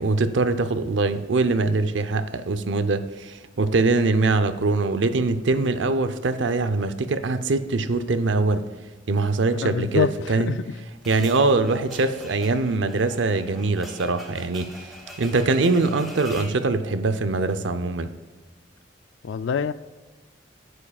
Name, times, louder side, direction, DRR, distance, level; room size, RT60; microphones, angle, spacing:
voice 1, 0.0-8.7 9.1-10.6 11.1-14.9 15.2-18.1, right 3 dB, 85° right, 0.6 m, -23 dB
voice 2, 9.6-10.6 19.2-19.7, left 6 dB, 75° left, 0.4 m, -25 dB
sound 1, 11.0-16.6, equal, ahead, 1.4 m, -42 dB
11.0 x 9.9 x 2.3 m
head